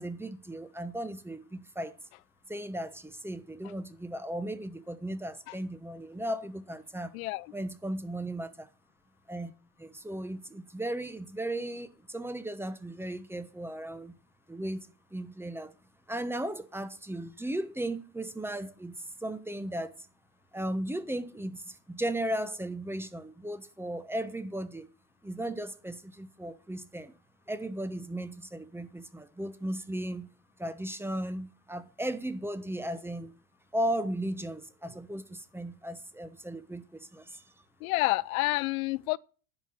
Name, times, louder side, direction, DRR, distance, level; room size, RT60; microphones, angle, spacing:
voice 1, 0.0-1.9 2.5-7.1 7.5-8.7 9.3-9.5 9.8-14.1 14.5-14.9 15.1-15.7 16.1-18.9 19.2-19.9 20.5-21.6 21.9-24.9 25.2-27.1 27.5-30.3 30.6-33.3 33.7-36.8 37.1-37.2, right 1 dB, 5° right, 1.0 m, -36 dB
voice 2, 7.1-7.5 37.8-39.2, left 21 dB, 80° left, 0.5 m, -29 dB
10.5 x 4.6 x 7.3 m
hypercardioid pair, 90°, 42 cm